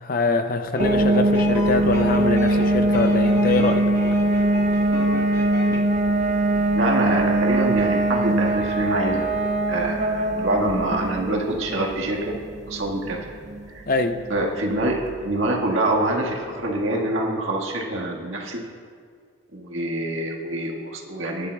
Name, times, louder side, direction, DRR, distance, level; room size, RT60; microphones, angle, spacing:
voice 1, 0.0-3.9 13.9-14.2, left 3 dB, 40° left, 8 dB, 0.5 m, -24 dB
sound 1, 0.7-5.8, left 1 dB, 15° left, 1.2 m, -35 dB
sound 2, 0.8-15.4, right 1 dB, 35° right, 0.6 m, -22 dB
voice 2, 6.7-9.3 9.7-12.3 12.7-13.3 13.7-13.8 14.3-15.0 15.2-18.6 19.5-21.5, right 1 dB, 70° right, -1 dB, 1.7 m, -25 dB
20.0 x 10.0 x 2.3 m, 2.1 s
head